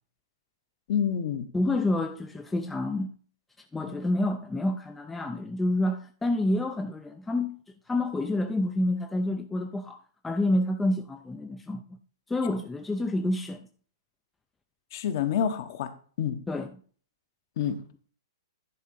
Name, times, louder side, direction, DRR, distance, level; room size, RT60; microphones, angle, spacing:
voice 1, 0.9-1.5 3.9-4.0 14.9-15.9 16.2-16.4 17.6-17.8, left 8 dB, 50° left, 1.1 m, -28 dB
voice 2, 1.5-3.1 3.7-7.6 7.9-12.0 12.3-13.7 16.5-16.7, left 1 dB, 5° left, 0.4 m, -28 dB
10.5 x 3.8 x 5.4 m
hypercardioid pair, 155°, 2 cm